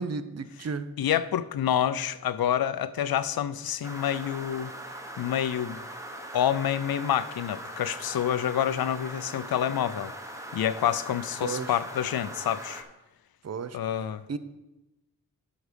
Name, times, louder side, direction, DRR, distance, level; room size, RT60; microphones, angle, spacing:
voice 1, 0.0-0.9 11.4-11.8 13.4-13.8 14.3-14.4, right 5 dB, 45° right, 0.6 m, -33 dB
voice 2, 1.0-4.7 5.2-5.8 6.3-10.1 10.5-12.8 13.7-14.2, left 10 dB, 80° left, 0.5 m, -28 dB
sound 1, 3.8-12.8, right 1 dB, 10° right, 1.1 m, -41 dB
13.0 x 5.2 x 5.0 m
wide cardioid pair, 100°, 36 cm